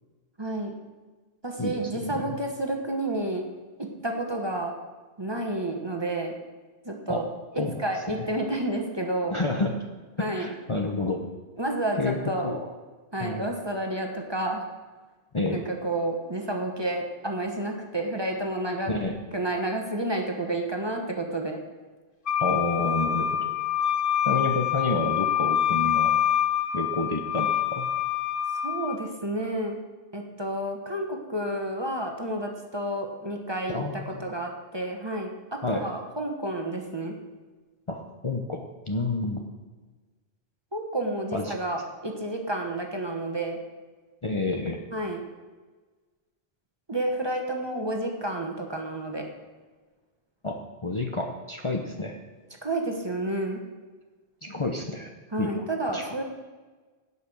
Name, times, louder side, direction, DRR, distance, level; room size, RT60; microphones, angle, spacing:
voice 1, 0.4-0.7 1.4-3.4 3.8-4.7 5.2-6.3 6.8-7.3 7.8-9.4 10.2-10.5 11.6-12.5 13.1-14.6 15.5-18.9 19.3-21.6 28.6-29.8 30.1-37.1 40.7-43.6 44.9-45.2 46.9-49.3 52.6-53.6 55.3-56.2, right 1 dB, 25° right, 2 dB, 1.3 m, -30 dB
voice 2, 1.6-2.4 7.1-7.3 7.6-7.8 8.1-8.3 9.3-9.8 10.2-11.2 12.0-12.2 12.4-12.7 13.2-13.5 15.3-15.6 18.9-19.2 22.4-23.5 24.2-26.1 26.7-27.9 33.7-34.2 35.6-35.9 37.9-39.4 41.3-41.5 44.2-44.8 50.4-52.2 54.4-55.1 55.4-55.6 55.9-56.1, left 2 dB, 30° left, 2 dB, 0.9 m, -29 dB
Wind instrument woodwind instrument, 22.3-29.0, left 10 dB, 60° left, 1.2 m, -26 dB
17.0 x 5.7 x 6.2 m, 1.3 s
omnidirectional pair, 1.0 m